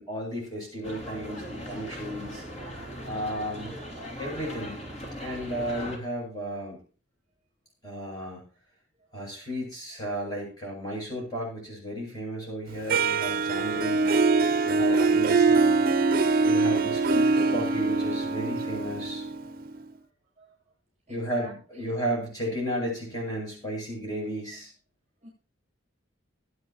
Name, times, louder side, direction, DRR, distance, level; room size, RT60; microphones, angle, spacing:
voice 1, 0.0-3.7 4.2-4.8 5.2-6.8 7.8-8.4 9.1-14.2 14.6-15.8 16.4-19.2 21.1-24.7, right 1 dB, 20° left, -4 dB, 8.0 m, -34 dB
sound 1, 0.8-6.0, equal, 35° left, 2.9 m, -39 dB
Harp, 12.9-19.8, right 4 dB, 45° right, 0.7 m, -23 dB
voice 2, 21.1-22.0 25.2-25.3, right 1 dB, 30° right, -2 dB, 7.8 m, -48 dB
22.5 x 8.5 x 3.0 m, 0.37 s
head